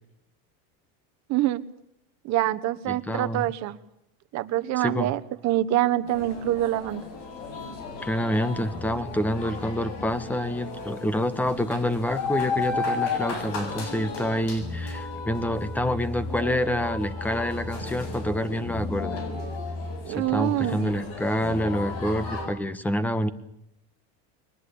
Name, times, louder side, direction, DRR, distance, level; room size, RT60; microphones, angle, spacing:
voice 1, 1.3-1.6 2.2-3.8 4.3-7.0 20.0-20.8, right 14 dB, 45° right, 13 dB, 1.3 m, -25 dB
voice 2, 2.9-3.5 4.7-5.1 8.0-19.2 20.1-23.3, equal, 5° left, 14 dB, 1.3 m, -27 dB
sound 1, 6.1-22.5, left 4 dB, 55° left, 7.6 m, -34 dB
22.5 x 19.5 x 8.6 m, 0.78 s
cardioid pair, 155°, 40 cm